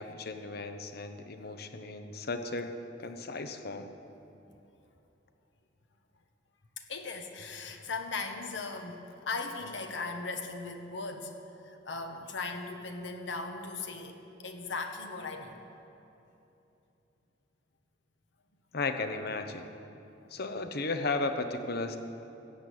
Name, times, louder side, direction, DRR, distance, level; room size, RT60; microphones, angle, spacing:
voice 1, 0.0-2.7 3.0-3.9 18.7-19.7 20.3-22.0, left 3 dB, 60° left, 7 dB, 0.9 m, -35 dB
voice 2, 6.9-11.3 11.6-15.6, left 3 dB, 80° left, 5 dB, 1.3 m, -38 dB
14.0 x 8.6 x 7.9 m, 2.9 s
head